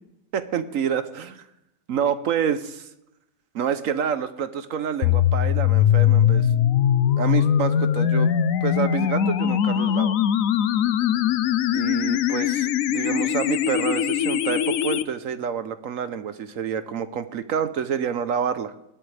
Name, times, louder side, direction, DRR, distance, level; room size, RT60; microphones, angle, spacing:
voice 1, 0.3-1.4 1.9-2.9 3.5-6.5 7.2-8.3 8.6-10.1 11.7-18.7, right 8 dB, 60° right, 11 dB, 1.0 m, -28 dB
sound 1, 5.0-15.0, left 10 dB, 65° left, 0.9 m, -21 dB
19.0 x 12.0 x 3.4 m, 0.86 s
omnidirectional pair, 1.8 m